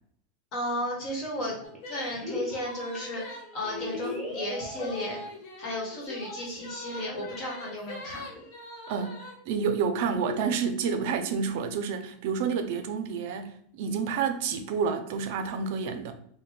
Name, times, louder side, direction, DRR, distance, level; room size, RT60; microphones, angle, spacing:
voice 1, 0.5-1.6 1.9-5.2 5.6-8.3, left 1 dB, 35° left, 1.3 m, -34 dB
sound 1, 0.8-0.9 1.1-1.8 2.1-2.6 2.9-3.2 3.6-5.3 5.6-5.7 5.9-6.0, left 2 dB, 5° left, 0.8 m, -37 dB
sound 2, 1.6-4.1 4.7-9.3, left 1 dB, 55° left, 1.0 m, -43 dB
voice 2, 8.9-9.2 9.5-16.1, right 6 dB, 55° right, 0.5 m, -29 dB
4.3 x 2.2 x 3.3 m
supercardioid pair, 165°, 0 cm